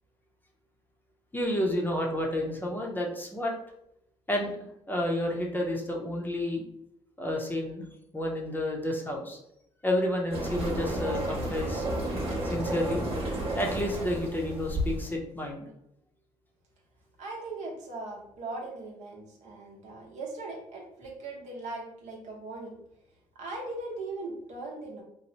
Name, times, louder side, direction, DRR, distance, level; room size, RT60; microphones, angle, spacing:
voice 1, 1.3-3.5 4.3-4.5 4.9-6.6 7.2-7.9 8.1-9.4 9.8-11.8 12.4-13.0 13.5-15.7, left 1 dB, 15° left, 0 dB, 0.6 m, -30 dB
sound 1, 10.3-15.1, right 1 dB, 50° right, 1.0 m, -32 dB
voice 2, 17.2-22.8 23.4-25.0, right 2 dB, 75° right, -1 dB, 0.8 m, -39 dB
3.0 x 2.0 x 2.8 m, 0.78 s
cardioid pair, 90°, 12 cm